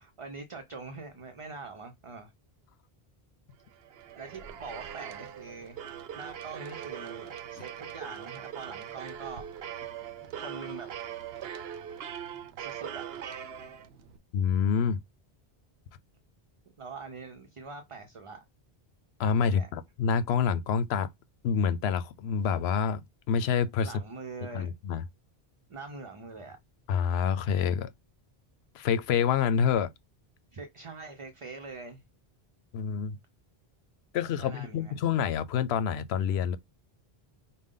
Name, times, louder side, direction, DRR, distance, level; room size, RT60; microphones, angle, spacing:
voice 1, 0.0-2.3 4.2-5.8 6.1-9.5 10.3-10.9 12.6-13.1 16.8-18.4 19.4-19.7 23.8-24.7 25.7-26.6 30.5-32.0 34.4-34.9, right 4 dB, 40° right, 0.6 m, -43 dB
sound 1, 3.7-14.2, right 9 dB, 80° right, 0.8 m, -41 dB
voice 2, 14.3-15.0 19.2-21.1 21.4-23.9 24.5-25.0 26.9-27.9 28.7-29.9 32.7-33.2 34.1-36.6, left 7 dB, 90° left, 0.8 m, -27 dB
5.1 x 2.2 x 3.7 m
omnidirectional pair, 1.0 m